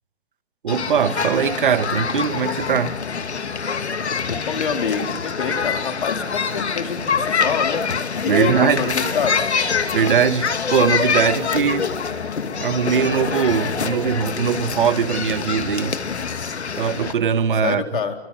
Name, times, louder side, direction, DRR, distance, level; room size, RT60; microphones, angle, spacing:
voice 1, 0.6-3.0 8.3-9.0 9.9-11.9 12.6-16.0 16.7-18.0, right 7 dB, 50° right, 1.6 m, -21 dB
sound 1, 0.7-17.1, left 6 dB, 90° left, 2.6 m, -25 dB
voice 2, 4.3-7.8 8.1-9.5 17.6-18.2, left 6 dB, 50° left, 4.1 m, -26 dB
28.0 x 25.0 x 7.7 m
hypercardioid pair, 170°, 32 cm